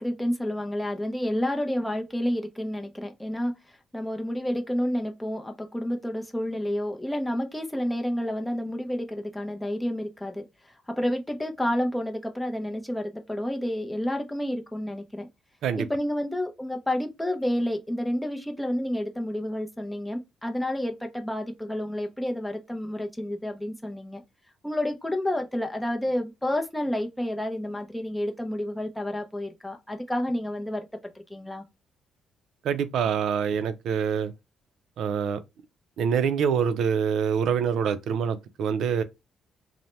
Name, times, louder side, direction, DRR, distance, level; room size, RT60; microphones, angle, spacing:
voice 1, 0.0-10.4 10.9-15.3 15.8-24.2 24.6-30.9 31.3-31.6, left 1 dB, 5° left, 0.5 m, -30 dB
voice 2, 32.6-34.3 35.0-35.4 36.0-39.0, right 7 dB, 75° right, 0.4 m, -25 dB
2.7 x 2.0 x 3.1 m
cardioid pair, 90°, 0 cm